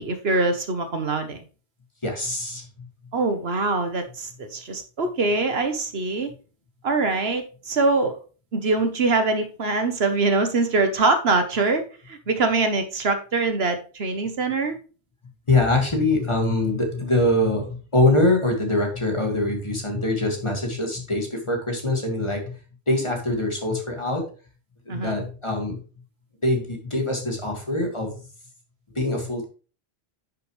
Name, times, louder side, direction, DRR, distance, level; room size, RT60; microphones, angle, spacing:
voice 1, 0.0-1.4 3.1-6.3 6.8-8.2 8.5-14.8 24.9-25.2, right 3 dB, 65° right, 8 dB, 1.3 m, -23 dB
voice 2, 2.0-2.9 15.5-22.5 22.9-24.2 24.9-25.8 26.4-28.1 29.0-29.4, left 2 dB, 25° left, 2 dB, 2.1 m, -23 dB
10.0 x 6.6 x 3.2 m, 0.36 s
omnidirectional pair, 1.1 m